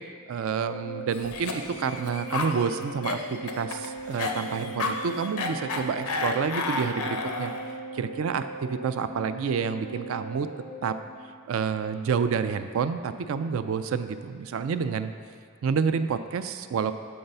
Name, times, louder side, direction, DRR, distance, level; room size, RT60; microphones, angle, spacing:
voice 1, 0.3-7.5 7.9-10.5 10.8-11.0 11.5-15.1 15.6-16.9, right 6 dB, 65° right, 11 dB, 0.3 m, -29 dB
Organ, 0.7-11.4, right 2 dB, 50° left, 0.4 m, -40 dB
Cough, 1.1-7.7, left 3 dB, 90° left, 0.6 m, -32 dB
7.8 x 3.9 x 5.4 m, 2.1 s
head